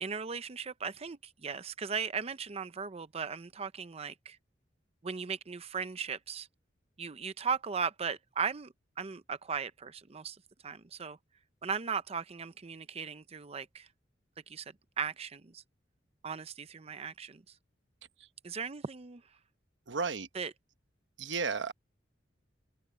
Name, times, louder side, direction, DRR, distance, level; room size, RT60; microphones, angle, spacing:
voice 1, 0.0-4.4 5.0-6.5 7.0-10.4 10.6-11.2 11.6-13.9 14.5-14.6 15.0-15.6 16.2-17.4 18.4-19.2 20.3-20.5, right 6 dB, 35° right, 0.6 m, -37 dB
voice 2, 19.9-20.3 21.2-21.7, right 4 dB, 75° right, 1.1 m, -33 dB
head